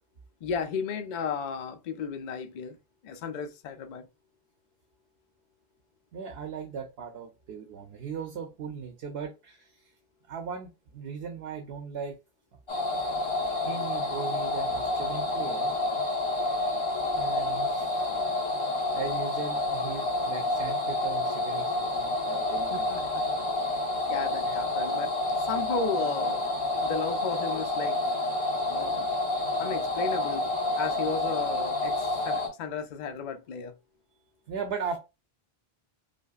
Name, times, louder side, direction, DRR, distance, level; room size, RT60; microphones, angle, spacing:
voice 1, 0.4-2.8 3.0-4.1 22.7-23.3 24.1-25.1 25.5-26.4 26.8-28.0 28.6-29.1 29.6-30.5 30.8-33.7, left 5 dB, 55° left, 0.5 m, -34 dB
voice 2, 6.1-9.9 10.3-12.2 13.6-15.7 17.1-18.0 18.9-23.1 34.5-35.0, right 6 dB, 80° right, 0.9 m, -38 dB
sound 1, 12.7-32.5, left 2 dB, 30° left, 1.0 m, -29 dB
5.1 x 2.0 x 2.4 m
omnidirectional pair, 1.0 m